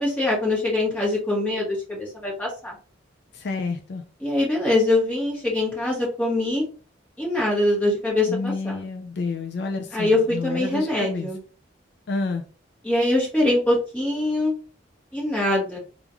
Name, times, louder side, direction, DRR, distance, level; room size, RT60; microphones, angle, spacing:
voice 1, 0.0-2.7 4.2-6.6 7.2-8.8 9.9-11.4 12.8-14.5 15.1-15.8, left 2 dB, 10° left, -5 dB, 1.6 m, -23 dB
voice 2, 3.3-4.0 8.3-11.3 12.1-12.5, left 4 dB, 60° left, 5 dB, 0.4 m, -29 dB
3.5 x 2.5 x 2.9 m, 0.37 s
head